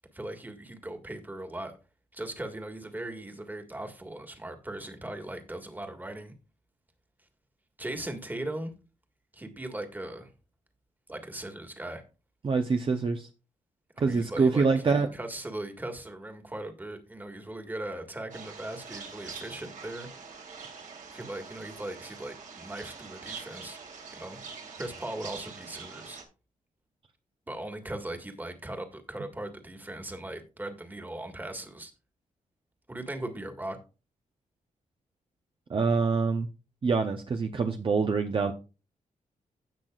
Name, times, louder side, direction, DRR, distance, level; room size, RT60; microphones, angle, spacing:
voice 1, 0.1-1.7 2.1-6.3 7.8-8.7 9.3-10.3 11.1-12.0 14.0-20.1 21.1-23.8 24.1-24.4 24.8-26.2 27.5-31.9 32.9-33.8, right 1 dB, 15° right, 1.8 m, -39 dB
voice 2, 12.4-13.3 14.0-15.1 35.7-36.5 36.8-38.5, right 4 dB, 40° right, 0.8 m, -25 dB
sound 1, 18.3-26.2, right 5 dB, 65° right, 2.5 m, -44 dB
16.5 x 5.9 x 2.5 m
wide cardioid pair, 120°, 14 cm